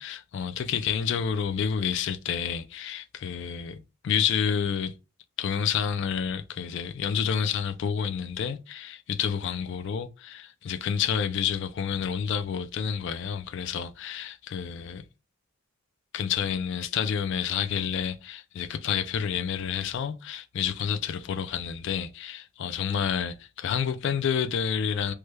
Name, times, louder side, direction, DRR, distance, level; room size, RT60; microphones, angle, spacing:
voice 1, 0.0-4.9 5.4-15.0 16.1-25.1, left 7 dB, 55° left, 0.3 m, -29 dB
3.1 x 2.2 x 3.2 m
head